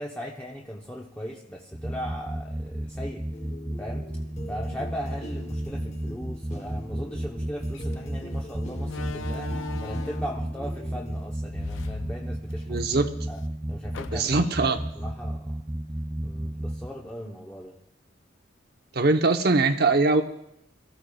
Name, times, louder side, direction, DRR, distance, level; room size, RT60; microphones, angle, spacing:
voice 1, 0.0-3.3 3.8-4.1 4.5-12.8 13.3-13.4 13.7-15.7 16.2-17.8, equal, 10° left, -2 dB, 0.8 m, -38 dB
sound 1, 1.7-16.9, right 1 dB, 10° right, 0.4 m, -33 dB
sound 2, 3.3-11.3, left 1 dB, 35° left, 1.0 m, -44 dB
Slam, 7.7-7.9 8.8-10.4 11.4-12.8 13.2-13.3 13.9-14.6, left 4 dB, 85° left, 0.5 m, -38 dB
voice 2, 12.7-13.1 14.1-14.8 18.9-20.2, right 3 dB, 55° right, 7 dB, 0.9 m, -22 dB
24.0 x 14.0 x 2.3 m, 0.79 s
head